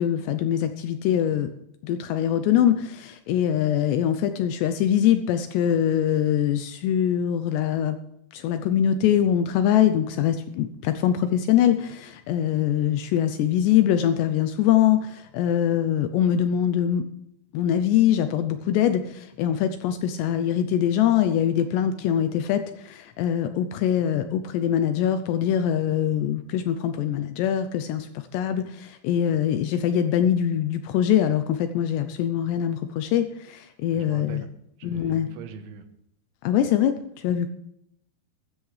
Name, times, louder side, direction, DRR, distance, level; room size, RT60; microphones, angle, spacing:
voice 1, 0.0-1.5 1.8-8.0 8.3-17.0 17.5-34.4 34.8-35.3 36.4-37.5, left 10 dB, 80° left, 9 dB, 2.6 m, -23 dB
voice 2, 33.9-34.5 34.8-35.8, right 6 dB, 80° right, 8 dB, 3.5 m, -41 dB
15.0 x 14.0 x 3.3 m, 0.78 s
omnidirectional pair, 5.5 m